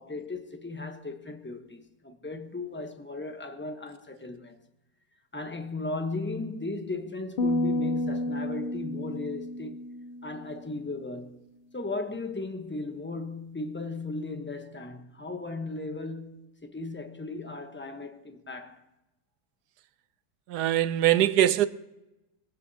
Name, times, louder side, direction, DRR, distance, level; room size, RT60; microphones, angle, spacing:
voice 1, 0.0-4.6 5.3-9.9 10.2-11.4 11.7-16.4 16.6-18.8, left 3 dB, 10° left, 0.8 m, -36 dB
sound 1, 7.4-10.8, left 1 dB, 70° left, 0.5 m, -31 dB
voice 2, 20.5-21.7, right 12 dB, 85° right, 1.2 m, -22 dB
23.0 x 15.0 x 2.8 m
omnidirectional pair, 1.7 m